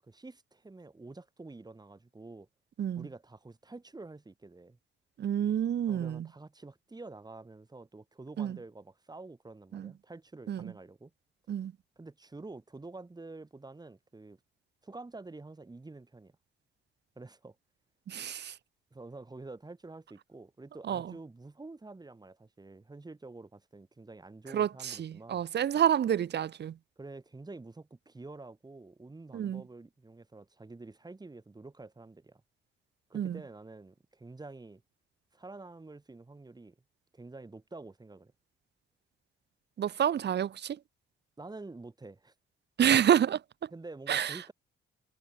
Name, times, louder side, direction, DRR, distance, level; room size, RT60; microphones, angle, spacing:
voice 1, 0.0-2.5 2.9-4.8 5.9-11.1 12.0-14.4 14.8-16.3 17.2-17.6 18.9-25.4 27.0-32.4 33.1-34.8 35.3-36.7 37.1-38.3 41.4-42.3 43.7-44.5, right 3 dB, 20° right, 7.8 m, -48 dB
voice 2, 5.2-6.3 8.4-8.6 9.7-9.9 10.5-10.7 11.5-11.7 18.1-18.5 20.9-21.1 24.5-26.7 29.3-29.6 33.1-33.4 39.8-40.8 42.8-43.4 44.1-44.3, right 9 dB, 60° right, 2.0 m, -28 dB
cardioid pair, 90°, 20 cm